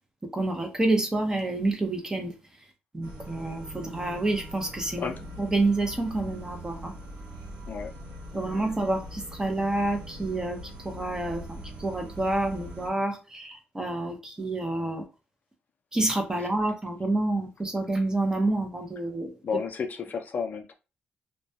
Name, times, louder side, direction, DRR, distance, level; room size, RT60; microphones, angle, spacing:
voice 1, 0.3-2.3 2.9-5.1 5.4-6.9 8.3-10.6 10.8-15.0 15.9-19.3, right 2 dB, 15° right, 0.6 m, -28 dB
sound 1, 3.0-12.9, equal, 80° right, 1.1 m, -42 dB
voice 2, 8.3-8.7 16.3-16.5 19.4-20.7, left 5 dB, 45° left, 0.4 m, -33 dB
2.2 x 2.2 x 2.6 m
cardioid pair, 105°, 4 cm